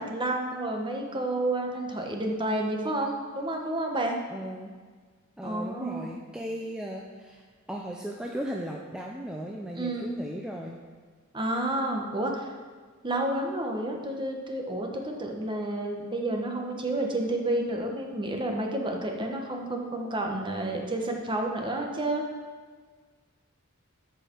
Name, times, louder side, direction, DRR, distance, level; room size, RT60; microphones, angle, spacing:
voice 1, 0.0-4.2 5.4-6.1 9.7-10.2 11.3-12.5 13.0-22.2, right 1 dB, 25° right, 1 dB, 1.1 m, -30 dB
voice 2, 4.3-4.7 5.4-7.4 7.7-10.8, equal, 5° right, -1 dB, 0.5 m, -36 dB
13.0 x 4.9 x 4.5 m, 1.5 s
head